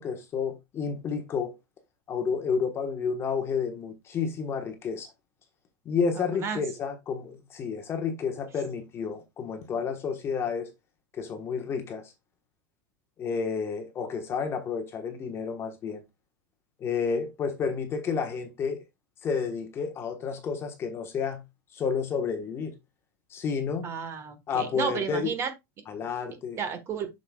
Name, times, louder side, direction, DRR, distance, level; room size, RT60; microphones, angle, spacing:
voice 1, 0.0-1.6 2.1-5.1 5.8-10.7 11.1-12.1 13.2-16.0 16.8-18.8 19.2-21.4 21.7-22.8 23.3-23.9 24.5-25.3 25.9-26.6, left 6 dB, 25° left, 1.2 m, -30 dB
voice 2, 6.2-6.6 23.8-25.5 26.6-27.1, right 6 dB, 25° right, 1.3 m, -32 dB
7.8 x 6.5 x 2.3 m
supercardioid pair, 155°, 10 cm